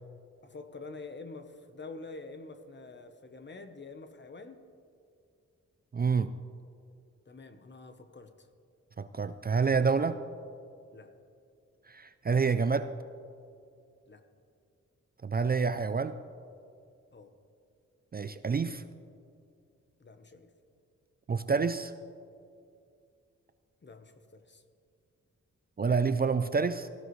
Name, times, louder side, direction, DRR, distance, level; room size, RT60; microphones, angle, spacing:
voice 1, 0.4-4.6 7.3-8.5 10.9-11.1 14.1-14.2 17.1-17.3 20.0-20.5 23.8-24.6, left 3 dB, 40° left, 8 dB, 1.0 m, -47 dB
voice 2, 5.9-6.3 9.0-10.2 11.9-12.9 15.2-16.2 18.1-18.8 21.3-21.9 25.8-26.9, right 5 dB, 35° right, 11 dB, 0.4 m, -28 dB
17.5 x 14.5 x 3.2 m, 2.4 s
wide cardioid pair, 90°, 29 cm